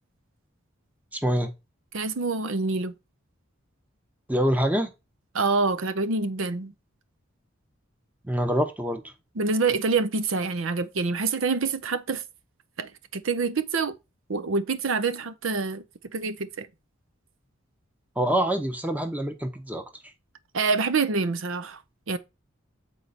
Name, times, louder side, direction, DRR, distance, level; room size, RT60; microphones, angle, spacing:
voice 1, 1.1-1.5 4.3-4.9 8.2-9.0 18.2-19.8, equal, 5° right, 0.8 m, -25 dB
voice 2, 1.9-2.9 5.3-6.7 9.4-12.2 12.8-13.9 14.3-15.8 16.1-16.7 20.5-21.8 22.1-22.2, right 4 dB, 65° right, 0.6 m, -26 dB
8.0 x 4.5 x 4.1 m
head